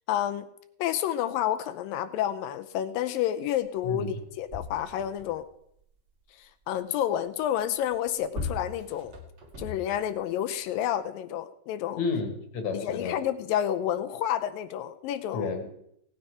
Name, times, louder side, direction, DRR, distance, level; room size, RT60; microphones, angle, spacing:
voice 1, 0.1-0.5 0.8-5.4 6.4-9.2 9.6-12.0 12.7-15.5, left 11 dB, 80° left, 11 dB, 2.2 m, -30 dB
voice 2, 3.8-4.2 12.0-13.2 15.3-15.7, left 4 dB, 60° left, 6 dB, 2.4 m, -31 dB
sound 1, 3.8-3.9 4.2-5.5 7.8-10.2 10.9-11.0, left 3 dB, 45° right, 1.5 m, -39 dB
17.0 x 9.7 x 4.9 m, 0.74 s
omnidirectional pair, 4.4 m